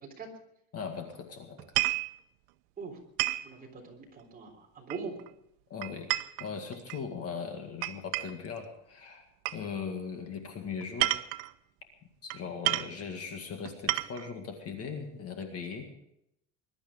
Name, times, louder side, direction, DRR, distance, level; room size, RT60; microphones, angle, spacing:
voice 1, 0.7-1.6 5.7-6.1 6.4-9.3 9.5-11.2 12.2-15.9, left 6 dB, 35° left, 5 dB, 2.1 m, -39 dB
sound 1, 1.6-2.1 3.2-3.5 4.9-5.3 5.8-7.0 7.8-8.5 9.5-9.6 10.8-11.5 12.3-12.4 12.7-13.0 13.7-14.3, right 18 dB, 80° right, 1.0 m, -31 dB
voice 2, 3.4-5.2, right 5 dB, 20° right, 0 dB, 3.6 m, -41 dB
21.5 x 12.0 x 5.1 m, 0.77 s
cardioid pair, 165°, 41 cm